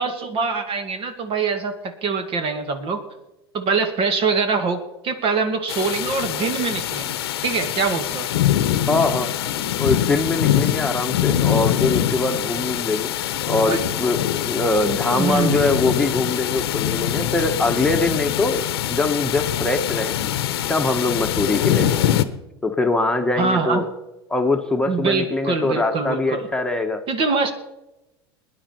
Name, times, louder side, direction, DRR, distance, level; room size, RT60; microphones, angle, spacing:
voice 1, 0.0-3.0 3.5-8.3 13.6-13.9 15.1-15.6 23.4-23.9 24.9-26.5 27.1-27.5, right 4 dB, 45° right, 8 dB, 2.3 m, -24 dB
sound 1, 5.7-22.2, left 11 dB, 80° left, 1.0 m, -23 dB
voice 2, 8.9-9.3 9.8-20.2 20.7-22.2 22.6-23.8 24.3-27.0, left 2 dB, 5° left, 3 dB, 1.5 m, -23 dB
22.5 x 10.5 x 4.6 m, 0.98 s
hypercardioid pair, 85°, 13 cm